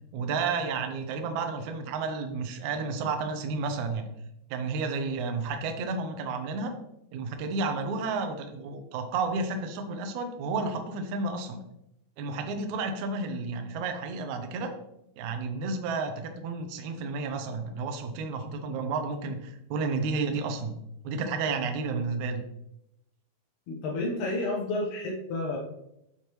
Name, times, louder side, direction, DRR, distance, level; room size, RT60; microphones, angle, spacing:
voice 1, 0.1-4.0 4.5-6.7 7.1-11.6 12.2-14.7 15.2-20.8 21.0-22.4, right 4 dB, 90° right, 5 dB, 1.6 m, -31 dB
voice 2, 23.7-25.6, left 2 dB, 70° left, -2 dB, 1.9 m, -30 dB
8.7 x 6.5 x 3.1 m, 0.83 s
omnidirectional pair, 4.7 m